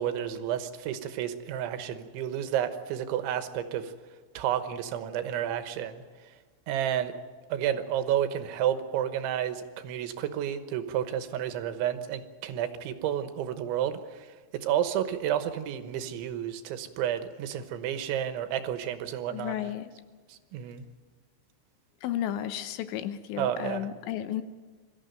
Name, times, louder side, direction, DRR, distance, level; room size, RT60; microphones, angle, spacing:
voice 1, 0.0-3.9 4.4-6.0 6.7-7.1 7.5-19.6 20.3-20.9 23.4-23.9, right 10 dB, 85° right, 9 dB, 3.5 m, -31 dB
voice 2, 19.3-19.9 22.0-24.4, left 11 dB, 80° left, 10 dB, 3.1 m, -33 dB
22.5 x 14.0 x 9.1 m, 1.4 s
omnidirectional pair, 5.3 m